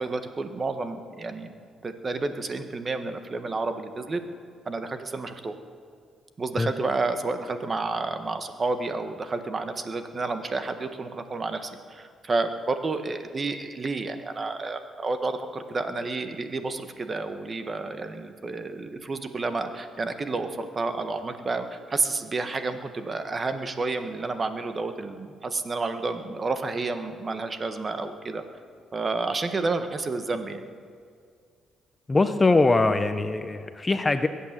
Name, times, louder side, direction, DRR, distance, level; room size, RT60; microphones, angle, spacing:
voice 1, 0.0-1.5 1.8-4.2 4.7-5.5 6.4-28.4 28.9-30.6, right 3 dB, 35° right, 8 dB, 1.3 m, -30 dB
voice 2, 32.1-34.3, left 3 dB, 20° left, 10 dB, 0.7 m, -22 dB
22.0 x 8.6 x 7.4 m, 2.2 s
cardioid pair, 90°, 0 cm